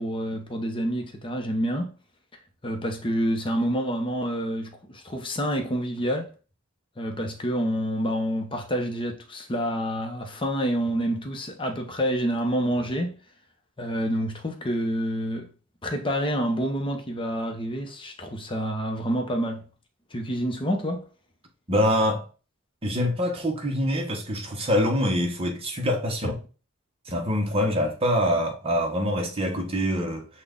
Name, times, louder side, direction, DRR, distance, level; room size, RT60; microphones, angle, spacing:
voice 1, 0.0-1.9 2.6-6.3 7.0-13.2 13.8-15.5 15.8-19.6 20.1-21.1 26.2-26.3, equal, 25° left, 0.8 m, -28 dB
voice 2, 21.7-22.2 22.8-26.4 27.1-30.3, equal, 25° right, 1.0 m, -25 dB
6.0 x 2.4 x 3.7 m
head